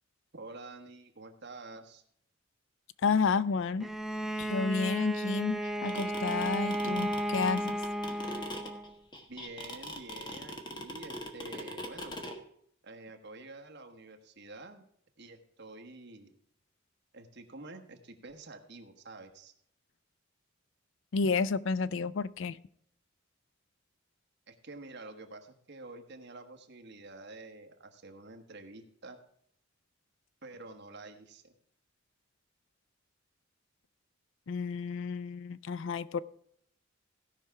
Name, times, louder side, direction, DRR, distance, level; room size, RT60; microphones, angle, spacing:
voice 1, 0.3-2.0 9.3-12.2 12.8-14.8 15.2-16.3 17.1-19.5 24.5-29.2 30.4-31.5, right 2 dB, 60° right, 1.3 m, -48 dB
voice 2, 3.0-3.9 4.4-7.8 21.1-22.6 34.5-36.2, left 5 dB, 65° left, 0.4 m, -31 dB
Bowed string instrument, 3.8-8.9, right 1 dB, ahead, 0.6 m, -34 dB
sound 1, 5.6-12.3, left 1 dB, 25° left, 1.3 m, -40 dB
16.5 x 5.7 x 4.7 m
head